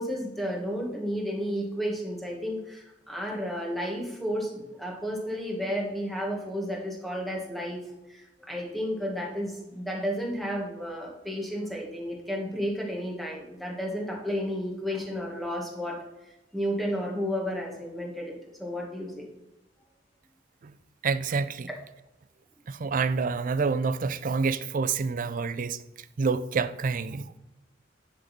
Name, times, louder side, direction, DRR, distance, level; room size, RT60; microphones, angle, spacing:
voice 1, 0.0-16.0 16.5-18.3 18.6-19.3, equal, ahead, -1 dB, 1.9 m, -32 dB
voice 2, 21.0-21.7 22.7-25.8 26.2-27.3, right 4 dB, 45° right, 14 dB, 0.4 m, -27 dB
10.0 x 3.9 x 6.0 m, 0.95 s
head